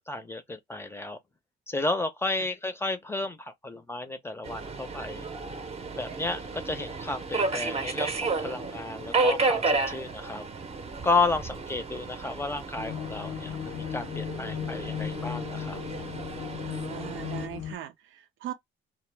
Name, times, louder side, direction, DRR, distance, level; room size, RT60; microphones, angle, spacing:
voice 1, 0.1-1.2 1.7-5.3 6.0-10.4 11.0-15.8, left 3 dB, 10° left, 0.5 m, -32 dB
Subway metro underground, 4.4-17.5, right 3 dB, 30° right, 0.7 m, -32 dB
sound 1, 12.8-17.7, left 9 dB, 75° left, 0.4 m, -36 dB
voice 2, 16.7-18.5, right 11 dB, 80° right, 0.5 m, -40 dB
2.0 x 2.0 x 3.2 m
cardioid pair, 90°, 20 cm